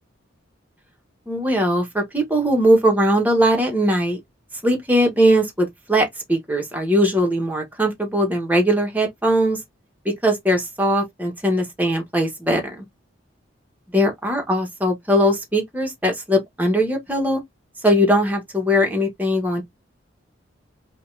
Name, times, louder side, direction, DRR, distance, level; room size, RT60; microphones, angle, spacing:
voice 1, 1.3-4.2 4.6-9.6 10.0-12.8 13.9-17.4 17.8-19.6, equal, 10° right, 1.7 m, -20 dB
5.3 x 2.9 x 2.7 m
head